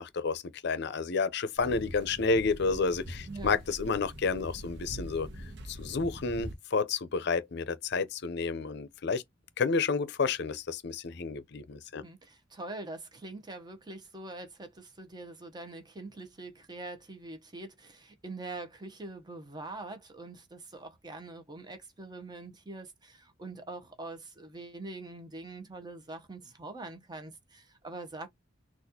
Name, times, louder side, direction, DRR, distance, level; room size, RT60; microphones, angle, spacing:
voice 1, 0.0-5.3 5.7-9.2 9.6-12.0, left 4 dB, 60° left, 0.6 m, -30 dB
sound 1, 1.6-6.5, equal, 65° right, 0.9 m, -43 dB
voice 2, 3.3-3.6 12.0-28.3, right 2 dB, 20° right, 0.8 m, -44 dB
4.1 x 2.4 x 2.7 m
head